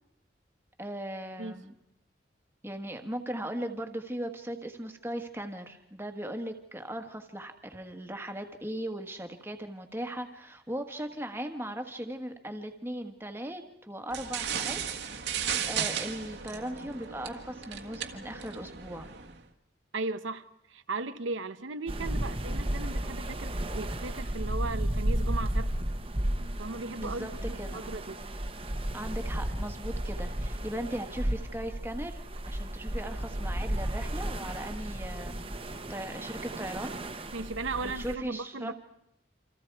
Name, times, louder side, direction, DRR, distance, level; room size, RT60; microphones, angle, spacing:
voice 1, 0.8-1.7 2.6-14.8 15.1-15.4 15.7-19.1 27.0-27.8 28.9-32.2 32.5-35.5 35.9-36.9 37.8-38.7, right 1 dB, 10° right, 1.6 m, -38 dB
sound 1, 14.1-19.4, right 8 dB, 65° right, 1.6 m, -35 dB
voice 2, 19.9-25.7 26.6-27.3 27.7-28.3 37.3-38.7, right 3 dB, 85° right, 0.9 m, -36 dB
sound 2, 21.9-38.1, right 1 dB, 30° right, 1.2 m, -33 dB
28.5 x 26.5 x 4.7 m
head